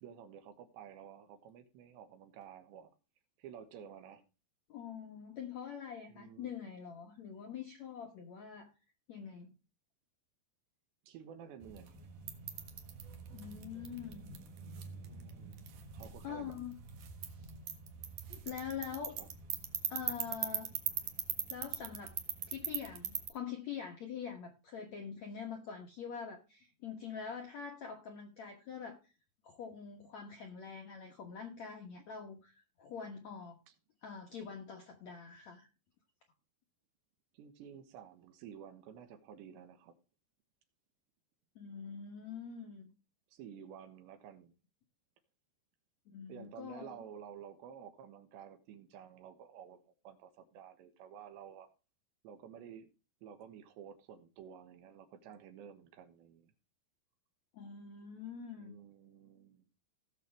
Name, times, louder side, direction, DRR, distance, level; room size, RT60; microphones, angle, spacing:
voice 1, 0.0-2.9 3.4-4.2 6.1-6.5 11.1-12.1 15.0-16.6 19.2-19.3 33.7-33.8 37.3-40.0 43.3-44.5 46.3-51.7 52.2-52.9 53.2-56.5 58.6-59.7, right 8 dB, 75° right, 3.4 m, -52 dB
voice 2, 4.7-8.7 9.1-9.5 13.3-14.2 16.2-16.7 17.4-17.5 18.3-19.2 19.9-20.7 21.5-22.1 22.4-29.1 29.4-33.6 34.0-35.7 41.5-42.9 46.1-47.0 57.5-58.8, left 7 dB, 70° left, 1.7 m, -45 dB
sound 1, 11.6-23.3, right 8 dB, 60° right, 2.3 m, -42 dB
17.5 x 6.9 x 3.3 m
omnidirectional pair, 5.2 m